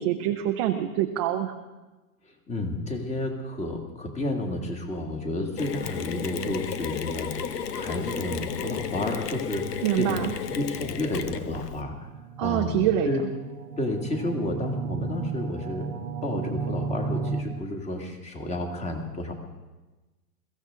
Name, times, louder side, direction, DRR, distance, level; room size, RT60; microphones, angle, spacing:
voice 1, 0.0-1.5 9.8-10.3 12.4-13.3, right 12 dB, 20° right, 5 dB, 0.4 m, -25 dB
voice 2, 2.2-10.2 10.5-12.1 12.4-12.8 13.0-13.2 13.8-19.3, left 1 dB, 15° left, 3 dB, 2.0 m, -31 dB
Mechanisms, 5.6-11.8, left 7 dB, 85° left, 1.3 m, -33 dB
sound 1, 11.8-17.4, right 5 dB, 45° right, 1.2 m, -33 dB
22.0 x 15.0 x 3.7 m, 1.2 s
hypercardioid pair, 135°, 46 cm